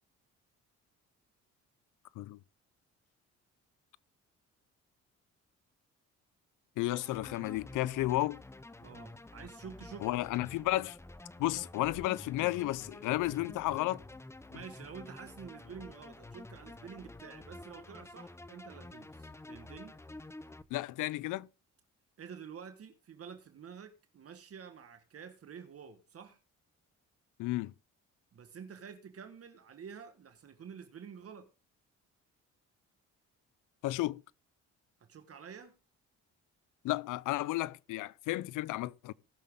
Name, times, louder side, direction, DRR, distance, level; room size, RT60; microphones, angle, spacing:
voice 1, 6.8-8.4 10.0-11.0 11.4-14.0 20.7-21.5 27.4-27.7 33.8-34.2 36.8-39.1, left 17 dB, 90° left, 0.6 m, -33 dB
sound 1, 6.9-20.6, left 2 dB, 10° left, 0.7 m, -50 dB
voice 2, 8.8-10.1 14.5-20.0 22.2-26.4 28.3-31.5 35.0-35.8, right 7 dB, 50° right, 1.5 m, -49 dB
18.5 x 6.6 x 3.7 m
cardioid pair, 90°, 30 cm